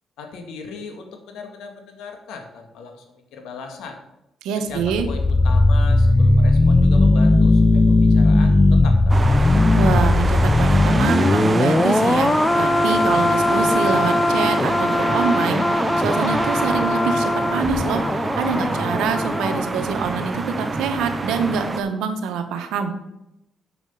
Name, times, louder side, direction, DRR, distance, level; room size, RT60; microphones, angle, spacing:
voice 1, 0.2-4.0 4.6-9.4, left 4 dB, 85° left, 5 dB, 1.7 m, -38 dB
voice 2, 4.4-5.1 9.8-22.9, right 5 dB, 90° right, 7 dB, 1.2 m, -25 dB
sound 1, 4.7-19.7 20.0-20.2, left 2 dB, 20° left, 0.6 m, -18 dB
sound 2, 9.1-21.8, right 3 dB, 25° right, 0.8 m, -26 dB
7.3 x 6.2 x 7.0 m, 0.87 s
cardioid pair, 90°, 0 cm